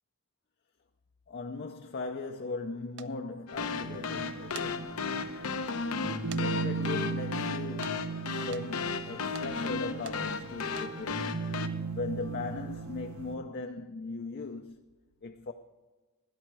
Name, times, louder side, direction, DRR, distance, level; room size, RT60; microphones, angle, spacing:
voice 1, 1.3-5.4 6.3-11.4 11.9-14.9 15.2-15.5, left 3 dB, 50° left, 0.6 m, -39 dB
sound 1, 3.0-3.1 4.3-4.7 5.3-5.4 6.3-6.5 6.7-6.8 7.8-8.0 8.5-8.7 9.3-9.5 10.1-10.2 10.7-10.9, right 9 dB, 55° right, 0.5 m, -45 dB
sound 2, 3.5-11.7, left 5 dB, 85° left, 0.8 m, -35 dB
sound 3, 3.5-13.4, right 4 dB, 90° right, 1.3 m, -37 dB
13.5 x 10.0 x 4.7 m
head